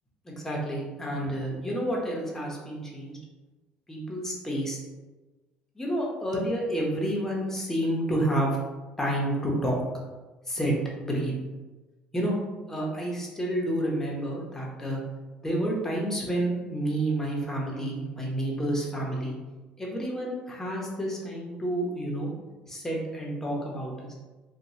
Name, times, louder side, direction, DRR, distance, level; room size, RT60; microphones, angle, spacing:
voice 1, 0.2-3.2 3.9-4.8 5.8-8.6 9.0-9.8 10.5-11.3 12.1-12.3 12.7-15.0 15.4-19.4 19.8-22.3 22.7-24.1, right 1 dB, 10° left, -3 dB, 0.8 m, -29 dB
2.9 x 2.3 x 2.7 m, 1.2 s
cardioid pair, 95°, 4 cm